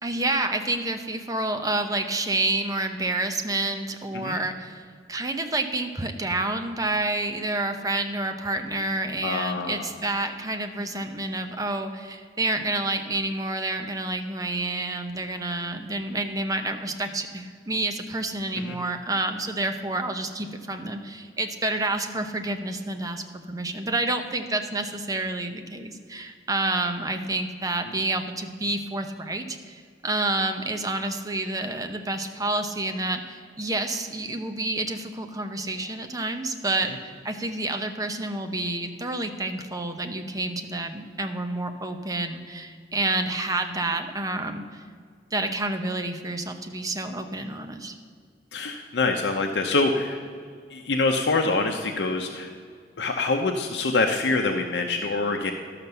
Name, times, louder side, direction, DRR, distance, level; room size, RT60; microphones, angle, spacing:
voice 1, 0.0-44.8 45.3-47.9, right 2 dB, 20° right, 6 dB, 0.8 m, -29 dB
voice 2, 9.2-9.9 18.6-18.8 48.5-50.2 50.7-52.5 53.0-55.5, left 3 dB, 75° left, 3 dB, 0.7 m, -25 dB
12.5 x 5.9 x 6.7 m, 2.1 s
head